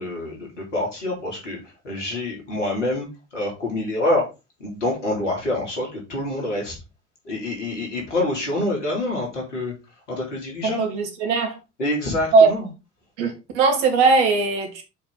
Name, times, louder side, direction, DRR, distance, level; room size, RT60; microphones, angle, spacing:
voice 1, 0.0-1.6 1.8-3.1 3.3-4.2 4.6-6.7 7.2-9.7 10.1-10.8 11.8-12.6, left 1 dB, 80° left, 3.4 m, -26 dB
voice 2, 10.6-11.6 12.3-12.5 13.2-14.8, right 4 dB, 70° right, 2.1 m, -19 dB
7.0 x 4.9 x 4.0 m
figure-of-eight pair, 60°, 36 cm